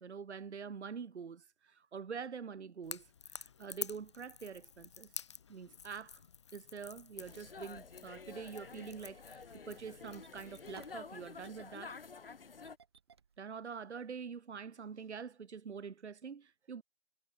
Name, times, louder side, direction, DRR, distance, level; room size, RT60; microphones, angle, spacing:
voice 1, 0.0-5.1 5.5-6.2 6.5-12.0 13.4-16.8, right 6 dB, 70° right, 1.1 m, -46 dB
Crackle / Crack, 2.8-11.0, left 7 dB, 25° left, 3.0 m, -49 dB
sound 1, 7.2-12.8, left 5 dB, 50° left, 1.8 m, -50 dB
Engine starting, 9.1-14.1, right 6 dB, 20° right, 1.9 m, -63 dB
hypercardioid pair, 180°, 36 cm